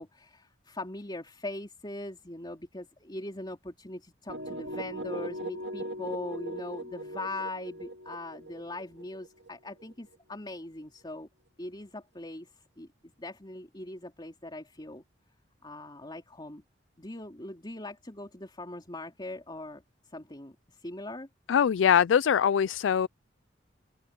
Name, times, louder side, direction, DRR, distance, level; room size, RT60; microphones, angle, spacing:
voice 1, 0.0-11.3 11.6-15.0 15.6-16.6 17.0-21.3, left 2 dB, 25° left, 3.3 m, -41 dB
sound 1, 4.3-10.1, equal, 65° right, 2.4 m, -39 dB
voice 2, 21.5-23.1, left 8 dB, 80° left, 0.4 m, -22 dB
open air
head